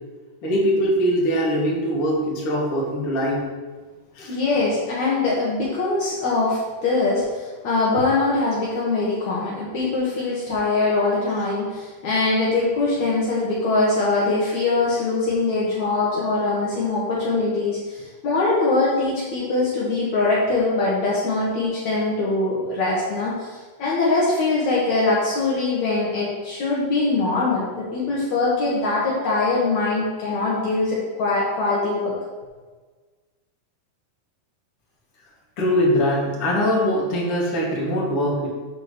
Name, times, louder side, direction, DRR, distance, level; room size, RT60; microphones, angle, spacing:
voice 1, 0.4-3.5 4.1-4.3 35.6-38.5, equal, 50° left, -4 dB, 1.7 m, -22 dB
voice 2, 4.3-32.1, left 3 dB, 80° left, -6 dB, 1.6 m, -22 dB
6.5 x 4.8 x 6.7 m, 1.4 s
omnidirectional pair, 5.4 m